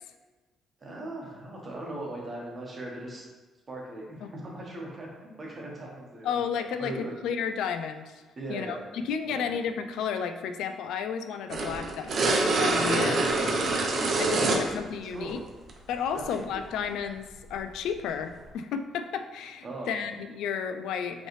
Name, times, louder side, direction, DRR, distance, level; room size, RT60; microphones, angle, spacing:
voice 1, 0.8-3.3 3.7-6.4 6.8-7.1 8.4-8.8 9.2-9.5 12.9-13.6 14.1-14.7 15.1-15.4 16.1-16.6 19.6-19.9, right 1 dB, 30° right, -2 dB, 1.1 m, -39 dB
voice 2, 6.2-8.1 8.5-13.2 14.2-15.4 15.9-21.3, left 7 dB, 85° left, 8 dB, 0.3 m, -32 dB
sound 1, 11.5-14.8 15.7-15.8 17.5-17.6, right 3 dB, 45° right, 0.6 m, -25 dB
5.3 x 3.2 x 3.1 m, 1.3 s
cardioid pair, 140°, 0 cm